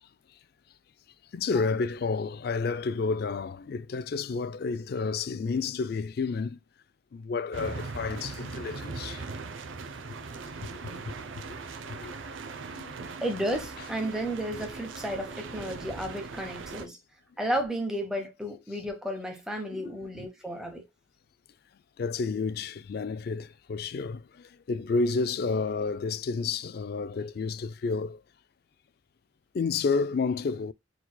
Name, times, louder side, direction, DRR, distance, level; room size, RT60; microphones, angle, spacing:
voice 1, 1.3-6.6 7.1-9.2 11.1-11.2 12.0-12.1 12.8-13.0 13.8-13.9 16.8-16.9 19.7-19.9 22.0-28.2 29.5-30.7, left 4 dB, 50° left, 0.3 m, -30 dB
sound 1, 7.5-16.9, right 4 dB, 75° right, 0.6 m, -40 dB
voice 2, 13.2-17.0 17.4-20.8, equal, 5° right, 0.9 m, -33 dB
4.5 x 4.0 x 2.2 m
head